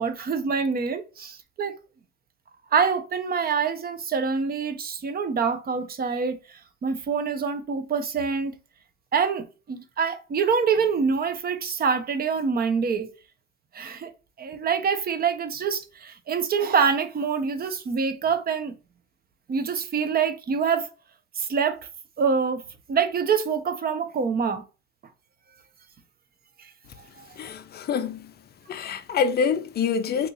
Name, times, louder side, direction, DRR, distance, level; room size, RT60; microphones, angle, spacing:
voice 1, 0.0-1.8 2.7-6.4 6.8-8.5 9.1-13.1 13.7-14.1 14.4-18.7 19.5-20.9 21.4-21.8 22.2-22.6 22.9-24.6 27.2-27.3, right 6 dB, 30° right, 0.6 m, -25 dB
voice 2, 27.4-28.3 28.7-30.3, left 6 dB, 35° left, 0.5 m, -26 dB
2.9 x 2.5 x 3.8 m
supercardioid pair, 95°, 30 cm